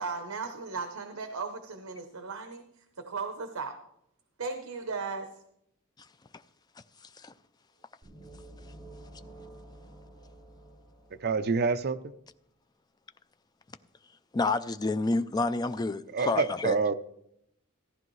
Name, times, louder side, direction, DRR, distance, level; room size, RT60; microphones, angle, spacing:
voice 1, 0.0-2.6 3.0-3.7 4.4-5.3, right 4 dB, 75° right, 0.9 m, -36 dB
sound 1, 8.0-11.8, right 1 dB, 10° right, 4.3 m, -50 dB
voice 2, 11.1-12.1 16.1-17.0, right 4 dB, 50° right, 0.5 m, -27 dB
voice 3, 14.3-16.8, left 3 dB, 20° left, 0.3 m, -29 dB
15.0 x 10.5 x 3.1 m
head